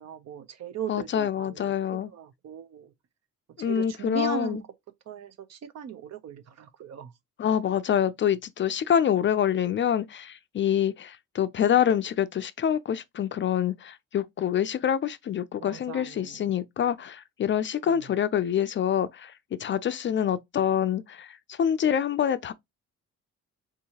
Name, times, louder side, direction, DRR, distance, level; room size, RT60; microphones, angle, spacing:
voice 1, 0.0-1.7 2.1-2.9 3.6-4.6 5.1-7.1 15.6-16.4 17.9-18.0, right 8 dB, 60° right, 0.7 m, -38 dB
voice 2, 0.9-2.1 3.6-4.6 7.4-19.3 19.6-22.5, left 9 dB, 40° left, 0.4 m, -26 dB
3.7 x 2.8 x 2.8 m
cardioid pair, 90°, 30 cm